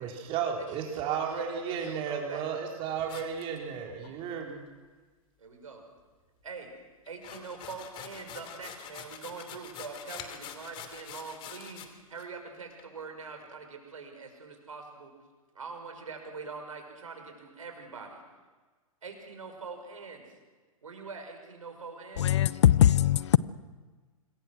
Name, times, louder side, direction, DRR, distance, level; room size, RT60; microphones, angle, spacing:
voice 1, 0.0-4.6, right 7 dB, 30° right, 4.3 m, -33 dB
voice 2, 0.6-2.5 5.4-5.8 6.4-6.7 7.0-15.1 15.5-18.2 19.0-20.3 20.8-22.6, right 4 dB, 65° right, 6.0 m, -44 dB
sound 1, 3.1-4.1 7.1-11.9 12.2-12.3 12.8-12.9, left 9 dB, 25° left, 2.7 m, -45 dB
voice 3, 22.2-23.4, left 11 dB, 50° left, 0.7 m, -21 dB
26.5 x 22.0 x 6.4 m
figure-of-eight pair, 110°, 18 cm